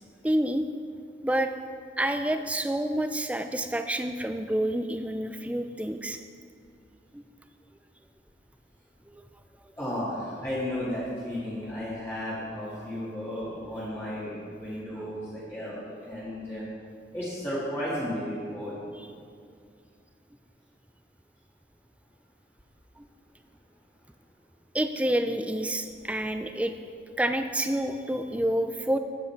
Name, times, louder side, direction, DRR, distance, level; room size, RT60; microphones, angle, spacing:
voice 1, 0.2-0.6 1.2-1.5 2.0-6.2 7.1-7.2 9.1-9.2 23.0-23.1 24.7-26.7 27.2-29.0, right 1 dB, 10° right, 8 dB, 0.4 m, -28 dB
voice 2, 9.8-16.7 17.1-18.8, left 1 dB, 15° left, -10 dB, 1.9 m, -34 dB
12.5 x 8.3 x 4.5 m, 2.3 s
head